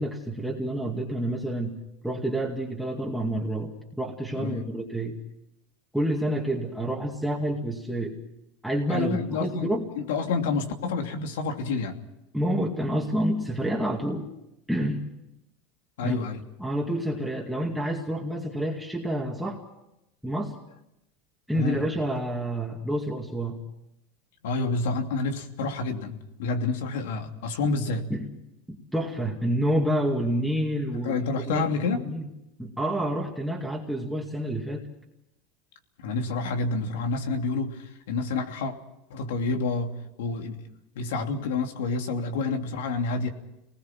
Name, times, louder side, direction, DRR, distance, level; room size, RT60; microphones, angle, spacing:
voice 1, 0.0-1.8 2.0-5.1 5.9-8.2 8.6-9.9 12.3-14.3 14.7-15.1 16.0-16.2 16.6-19.6 20.2-20.5 21.5-23.6 28.1-28.4 28.7-31.2 31.5-32.3 32.6-34.8, right 1 dB, ahead, -2 dB, 2.3 m, -28 dB
voice 2, 4.4-4.7 8.9-12.0 16.0-16.4 21.5-21.9 24.4-28.1 31.0-32.1 36.0-38.7 39.1-39.9 40.2-40.7 40.9-43.3, left 3 dB, 90° left, 4 dB, 2.9 m, -28 dB
28.0 x 20.0 x 6.1 m, 0.88 s
supercardioid pair, 140°, 0 cm